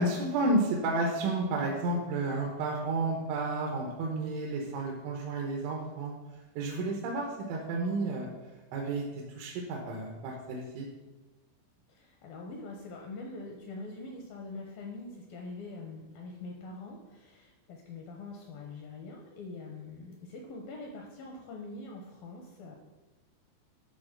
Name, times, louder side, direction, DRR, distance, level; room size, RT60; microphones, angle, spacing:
voice 1, 0.0-6.1 6.6-8.3 8.7-9.1 9.4-10.9, right 2 dB, 85° right, -1 dB, 3.5 m, -31 dB
voice 2, 11.9-22.8, left 3 dB, 75° left, 0 dB, 2.2 m, -44 dB
11.5 x 3.9 x 6.5 m, 1.1 s
omnidirectional pair, 5.2 m